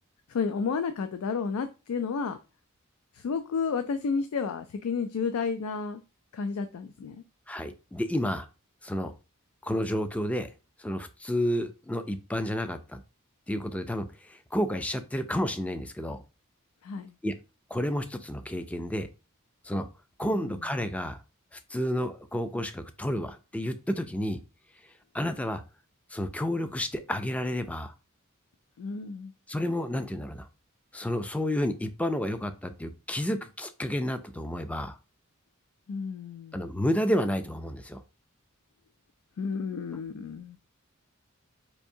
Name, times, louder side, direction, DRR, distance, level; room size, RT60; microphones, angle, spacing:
voice 1, 0.3-2.4 3.1-6.0 6.3-7.2 16.8-17.1 20.2-20.5 28.8-29.3 35.9-36.6 39.4-40.6, left 5 dB, 85° left, 0.4 m, -31 dB
voice 2, 7.5-8.5 8.8-9.1 9.6-10.5 10.8-13.0 13.5-16.2 17.2-17.3 17.7-19.1 19.6-19.9 20.2-21.2 21.5-24.4 25.1-25.6 26.1-27.9 29.5-30.5 30.9-35.0 36.5-38.0, equal, 5° left, 0.3 m, -30 dB
4.5 x 2.6 x 2.6 m
head